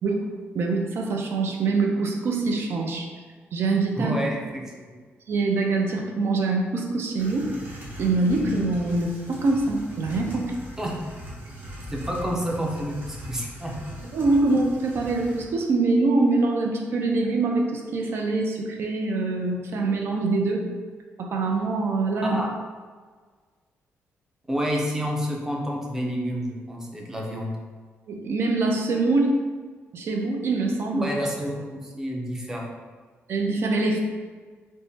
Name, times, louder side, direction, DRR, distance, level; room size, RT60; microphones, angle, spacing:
voice 1, 0.5-3.1 3.5-4.1 5.3-7.5 8.0-10.5 14.1-20.6 21.2-22.4 28.1-29.4 29.9-31.1 33.3-34.0, right 3 dB, 60° right, 2 dB, 0.5 m, -24 dB
voice 2, 4.0-4.9 10.8-11.0 11.9-13.8 22.2-22.5 24.5-27.5 30.9-32.7, equal, 10° right, -1 dB, 0.6 m, -29 dB
sound 1, 7.2-15.4, equal, 40° right, 0.9 m, -40 dB
3.5 x 2.1 x 4.0 m, 1.5 s
cardioid pair, 135°, 5 cm